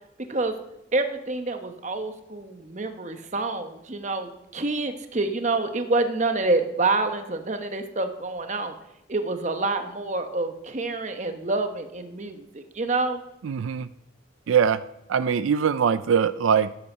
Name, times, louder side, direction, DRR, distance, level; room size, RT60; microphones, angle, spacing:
voice 1, 0.9-8.7 9.1-13.2, right 3 dB, 35° right, 7 dB, 1.0 m, -27 dB
voice 2, 13.4-13.9 14.5-14.8 15.1-16.7, right 7 dB, 85° right, 14 dB, 0.4 m, -22 dB
13.5 x 8.4 x 5.5 m, 0.87 s
head